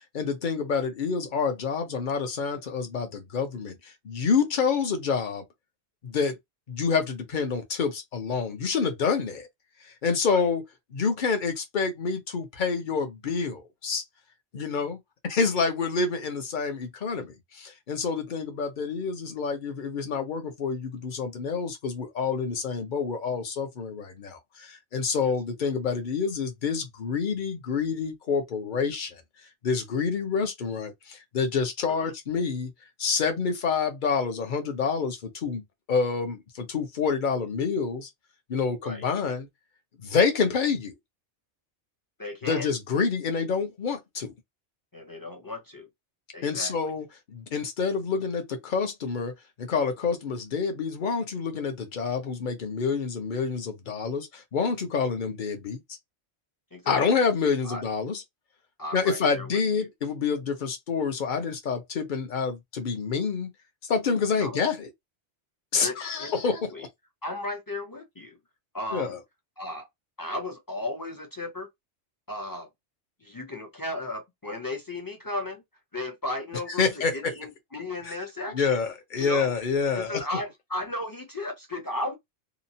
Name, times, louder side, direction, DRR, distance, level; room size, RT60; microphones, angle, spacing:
voice 1, 0.1-5.4 6.0-6.4 6.7-9.5 9.8-10.6 10.9-14.0 14.5-29.2 29.6-32.7 33.0-35.6 35.9-38.1 38.5-39.5 40.0-40.9 42.4-44.3 46.4-49.3 49.6-55.8 56.9-58.2 58.9-63.5 63.9-64.9 65.7-66.7 68.9-69.2 76.8-77.3 78.1-78.2 78.5-80.2, left 5 dB, 50° left, 0.8 m, -27 dB
voice 2, 42.2-42.7 44.9-45.9 46.3-46.7 56.7-57.0 57.6-57.8 58.8-59.6 64.4-64.6 65.8-66.9 67.2-68.4 68.7-69.2 69.6-69.9 70.2-71.7 72.3-72.7 73.2-75.6 75.9-78.8 79.2-79.5 79.9-82.2, left 1 dB, 30° left, 0.4 m, -35 dB
2.9 x 2.0 x 2.6 m
omnidirectional pair, 1.2 m